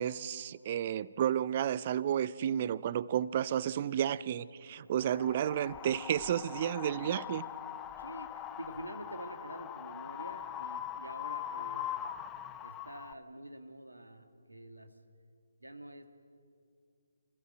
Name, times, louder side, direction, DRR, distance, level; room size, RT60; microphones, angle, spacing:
voice 1, 0.0-7.5, right 10 dB, 35° right, 19 dB, 0.5 m, -32 dB
Wind, 5.0-13.1, left 10 dB, 15° left, 0.6 m, -42 dB
voice 2, 8.0-11.9 12.6-14.9 15.6-16.1, right 1 dB, 90° right, 7 dB, 1.9 m, -47 dB
25.5 x 15.0 x 7.8 m, 2.3 s
figure-of-eight pair, 145°, 0 cm